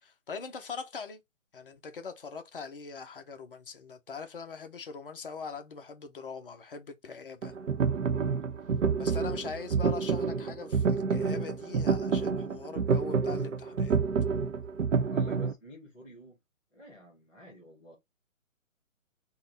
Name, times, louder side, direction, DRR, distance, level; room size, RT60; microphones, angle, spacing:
voice 1, 0.0-1.2 1.5-7.5 9.0-14.0, left 5 dB, 40° left, 0.6 m, -42 dB
sound 1, 7.4-15.5, right 5 dB, 65° right, 0.8 m, -28 dB
voice 2, 15.1-16.4 16.7-18.0, equal, ahead, 0.4 m, -50 dB
3.7 x 2.2 x 3.8 m
hypercardioid pair, 160°, 41 cm